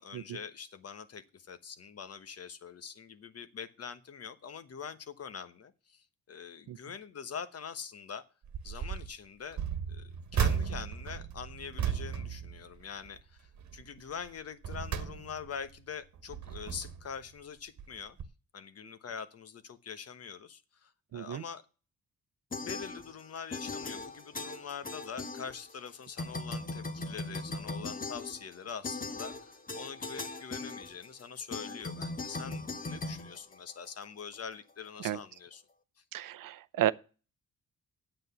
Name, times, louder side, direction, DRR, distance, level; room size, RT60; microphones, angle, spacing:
voice 1, 0.0-8.2 8.6-9.6 9.9-18.2 18.5-21.6 22.5-35.6, left 6 dB, 50° left, 1.1 m, -44 dB
sound 1, 8.4-9.1 9.5-13.2 13.6-13.9 14.4-15.7 16.2-17.1 17.8-17.9 18.2-18.3, right 7 dB, 60° right, 1.4 m, -35 dB
voice 2, 21.1-21.4 35.0-35.2 36.1-36.9, right 13 dB, 85° right, 0.7 m, -32 dB
sound 2, 22.5-23.3 23.5-25.9 26.2-34.0, left 3 dB, 25° left, 1.1 m, -39 dB
9.0 x 7.9 x 6.8 m
cardioid pair, 120°, 32 cm